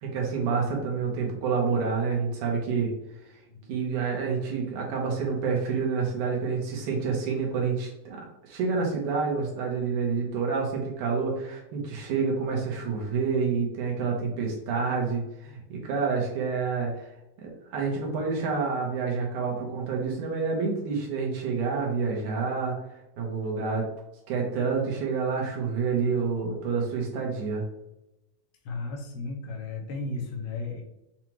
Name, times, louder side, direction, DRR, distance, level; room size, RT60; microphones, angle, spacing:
voice 1, 0.0-2.9 3.7-17.1 17.4-22.7 23.2-23.9 24.3-27.6, right 5 dB, 70° right, -1 dB, 2.1 m, -28 dB
voice 2, 28.7-30.8, left 3 dB, 85° left, 3 dB, 2.6 m, -34 dB
7.2 x 2.4 x 3.0 m, 0.90 s
omnidirectional pair, 4.3 m